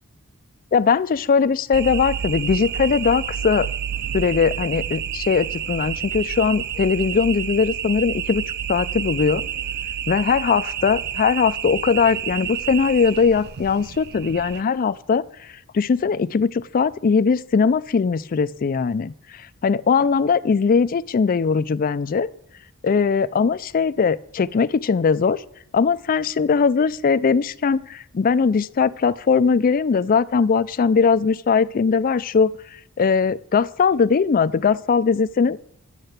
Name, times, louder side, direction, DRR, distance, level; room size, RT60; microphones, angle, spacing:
voice 1, 0.7-3.7 4.1-8.4 8.7-9.4 10.1-15.2 15.7-19.1 19.6-22.3 22.8-25.4 25.7-32.5 33.0-35.6, left 5 dB, 40° left, 16 dB, 0.4 m, -20 dB
sound 1, 1.7-14.6, right 9 dB, 50° right, 0.4 m, -29 dB
11.0 x 6.6 x 8.0 m, 0.74 s
head